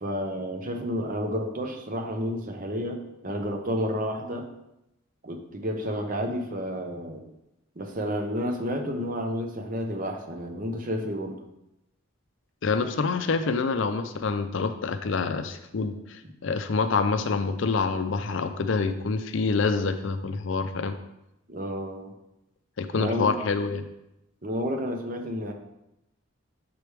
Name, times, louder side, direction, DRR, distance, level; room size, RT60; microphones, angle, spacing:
voice 1, 0.0-4.5 5.2-7.3 7.8-11.3 21.5-22.1 22.9-23.3 24.4-25.5, equal, 40° right, 4 dB, 0.8 m, -30 dB
voice 2, 12.6-21.0 22.8-23.8, left 4 dB, 65° left, 9 dB, 0.5 m, -27 dB
6.8 x 4.7 x 3.4 m, 0.87 s
head